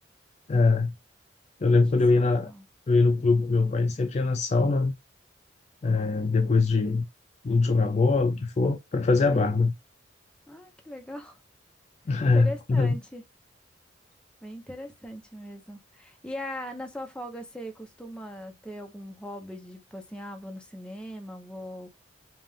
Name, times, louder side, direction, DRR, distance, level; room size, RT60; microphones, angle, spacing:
voice 1, 0.5-0.9 1.6-2.5 2.9-4.9 5.8-7.1 7.4-9.7 12.1-13.0, left 3 dB, 35° left, 0.3 m, -22 dB
voice 2, 2.1-2.6 9.3-9.6 10.5-11.4 12.3-13.2 14.4-21.9, equal, 5° left, 0.8 m, -40 dB
5.4 x 2.4 x 3.5 m
head